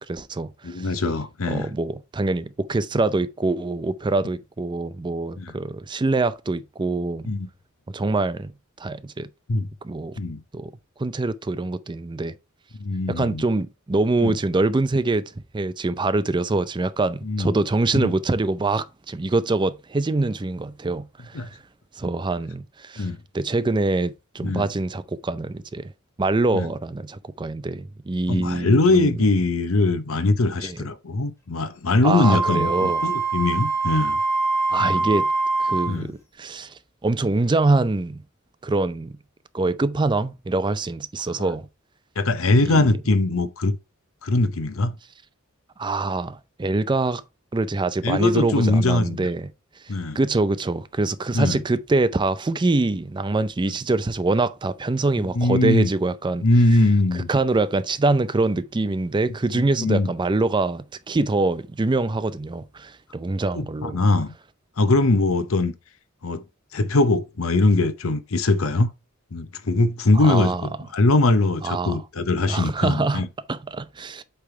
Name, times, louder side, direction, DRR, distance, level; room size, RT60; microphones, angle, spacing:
voice 1, 0.1-0.9 1.5-7.3 7.9-8.5 8.8-9.3 9.8-10.2 10.5-10.7 11.0-12.3 13.1-21.6 22.0-23.1 23.3-25.9 26.2-29.2 30.6-30.9 32.0-33.1 34.7-35.3 35.6-36.7 37.0-38.2 38.6-39.1 39.5-41.7 42.6-42.9 45.8-47.2 47.5-49.5 50.2-56.4 57.1-64.0 70.2-70.6 71.6-72.0 72.5-74.2, right 2 dB, 20° right, 0.4 m, -24 dB
voice 2, 0.6-1.7 5.4-5.5 7.3-7.5 9.5-9.7 10.2-10.4 12.8-13.4 14.2-14.4 17.2-17.5 17.9-18.1 21.3-21.5 23.0-23.2 24.4-24.7 26.5-26.7 28.3-34.2 34.8-35.0 35.9-36.1 41.4-41.5 42.2-43.8 44.2-45.0 48.0-49.3 49.9-50.2 51.3-51.6 53.7-53.8 55.4-55.9 56.4-57.3 59.5-60.1 63.5-64.3 64.8-65.7 66.2-66.4 66.7-68.9 69.3-70.5 70.9-73.3, left 2 dB, 85° left, 0.8 m, -21 dB
Wind instrument woodwind instrument, 32.2-36.0, right 3 dB, 15° left, 1.3 m, -23 dB
8.4 x 3.5 x 4.4 m
head